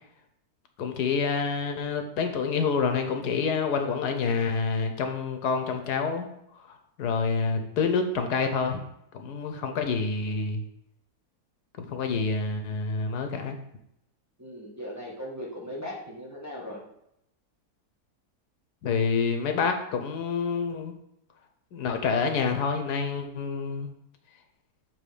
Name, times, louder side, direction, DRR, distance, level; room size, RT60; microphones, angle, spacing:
voice 1, 0.8-6.3 6.5-8.8 9.1-10.6 11.9-13.6 18.8-20.9 21.7-23.9, left 5 dB, 85° left, 6 dB, 1.4 m, -27 dB
voice 2, 14.4-16.8, equal, 10° right, -5 dB, 1.1 m, -38 dB
7.0 x 3.5 x 4.9 m, 0.79 s
omnidirectional pair, 1.7 m